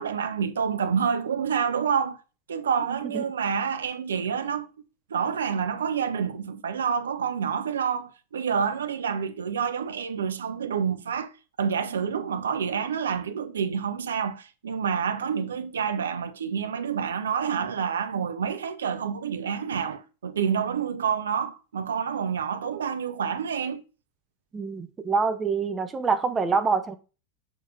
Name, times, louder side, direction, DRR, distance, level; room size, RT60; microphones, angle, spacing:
voice 1, 0.0-2.2 2.5-4.7 5.1-11.3 11.6-23.8, right 7 dB, 65° right, 0.7 m, -28 dB
voice 2, 24.5-27.0, right 4 dB, 15° right, 0.7 m, -25 dB
6.8 x 6.2 x 2.5 m
figure-of-eight pair, 90°, 0 cm